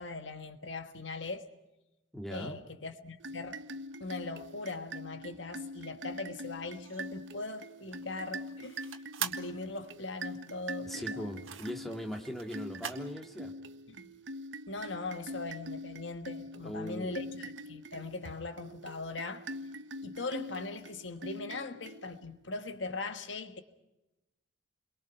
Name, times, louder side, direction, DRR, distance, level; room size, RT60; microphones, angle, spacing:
voice 1, 0.0-1.5 2.3-3.6 4.0-11.3 13.9-14.1 14.7-19.5 20.0-23.6, left 3 dB, 65° left, 1.5 m, -40 dB
voice 2, 2.1-2.6 10.9-13.6 16.6-17.3, equal, ahead, 2.2 m, -40 dB
sound 1, 3.2-22.4, right 1 dB, 65° right, 0.8 m, -44 dB
sound 2, 6.8-13.1, right 8 dB, 90° right, 1.8 m, -43 dB
29.0 x 23.0 x 5.8 m
head